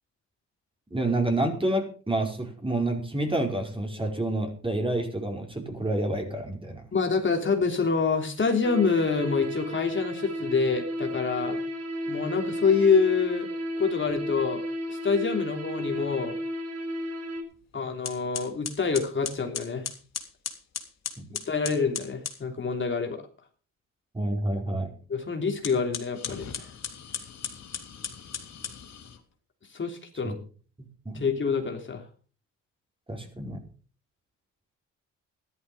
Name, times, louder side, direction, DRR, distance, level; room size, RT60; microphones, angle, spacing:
voice 1, 0.9-6.8 21.2-21.3 24.1-24.9 30.2-30.4 31.0-31.3 33.1-33.6, right 1 dB, 15° right, 3 dB, 4.8 m, -28 dB
voice 2, 6.9-11.6 12.1-13.5 13.8-16.3 17.7-19.9 21.5-23.3 25.1-26.7 29.7-30.4 31.1-32.1, left 5 dB, 40° left, 3 dB, 3.1 m, -26 dB
sound 1, 8.6-17.4, equal, 55° right, 3.6 m, -33 dB
sound 2, 17.5-17.6 18.0-22.4 25.5-29.2, left 8 dB, 60° left, 3.3 m, -37 dB
13.5 x 12.0 x 5.5 m, 0.40 s
cardioid pair, 75°, 31 cm